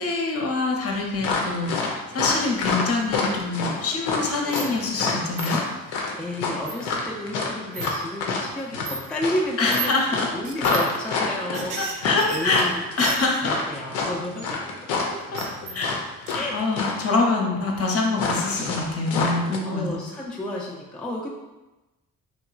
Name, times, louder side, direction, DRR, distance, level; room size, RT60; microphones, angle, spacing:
voice 1, 0.0-5.6 9.6-10.3 11.5-12.7 13.0-13.6 15.7-15.9 16.3-19.9, left 3 dB, 35° left, 1 dB, 0.7 m, -25 dB
sound 1, 1.2-16.5 16.7-17.1 18.2-19.6, left 4 dB, 80° left, 0.5 m, -27 dB
sound 2, 3.0-3.5 3.8-5.1 5.4-5.5 6.6-7.0 7.7-7.9 8.3-8.4 8.8-9.0 9.7-9.9 10.4-10.9 11.2-13.6 15.1-16.0 16.3-16.4, right 5 dB, 50° right, 0.5 m, -35 dB
voice 2, 4.4-4.8 6.2-14.7 16.3-16.6 19.7-21.3, left 1 dB, 5° left, -3 dB, 0.4 m, -32 dB
2.9 x 2.3 x 2.3 m, 1.1 s
hypercardioid pair, 45°, 41 cm